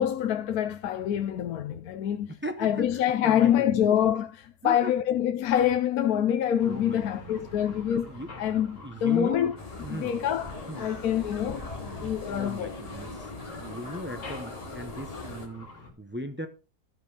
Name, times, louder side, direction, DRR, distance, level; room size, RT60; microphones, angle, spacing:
voice 1, 0.0-9.5 9.9-12.8, left 10 dB, 75° left, 1.2 m, -26 dB
voice 2, 2.4-3.9 4.6-4.9 6.6-8.3 8.8-9.4 9.8-10.1 10.7-10.9 12.3-16.5, right 1 dB, 20° right, 0.3 m, -38 dB
sound 1, 6.6-15.9, left 1 dB, 55° left, 2.2 m, -45 dB
sound 2, 9.6-15.5, left 3 dB, 25° left, 1.3 m, -41 dB
12.5 x 5.3 x 4.8 m
omnidirectional pair, 1.6 m